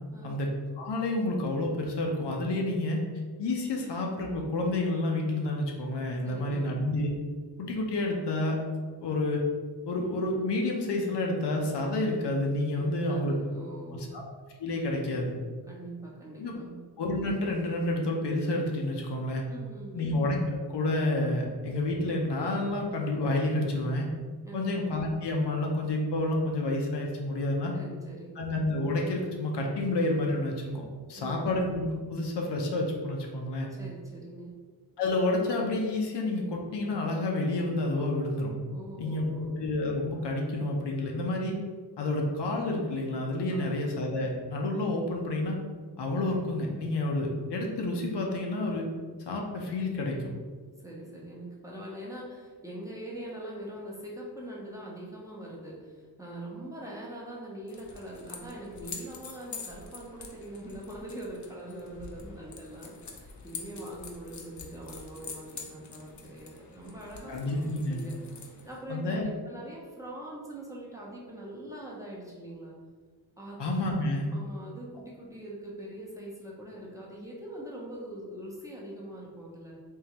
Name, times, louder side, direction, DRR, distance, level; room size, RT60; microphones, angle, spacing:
voice 1, 0.8-3.0 3.4-7.1 7.6-8.6 9.0-9.4 9.8-13.3 13.9-14.2 14.6-15.3 16.4-16.5 17.0-19.4 19.9-20.4 20.7-24.1 24.5-27.7 28.4-30.8 31.1-33.7 35.0-38.5 39.0-41.5 42.0-45.6 46.0-48.9 49.3-50.2 67.3-68.0 68.9-69.3 73.6-74.3, left 2 dB, 85° left, 0 dB, 0.7 m, -29 dB
voice 2, 6.2-6.7 12.8-14.1 15.7-16.8 19.5-20.1 24.4-24.7 27.7-28.4 31.2-31.4 33.8-34.5 38.7-39.5 43.5-43.7 50.8-67.6 67.9-72.7 73.4-73.6 74.3-79.7, right 1 dB, 10° right, -5 dB, 0.6 m, -43 dB
sound 1, 57.7-68.8, left 5 dB, 45° left, 0.5 m, -46 dB
3.7 x 3.1 x 2.9 m, 1.5 s
wide cardioid pair, 165°, 40 cm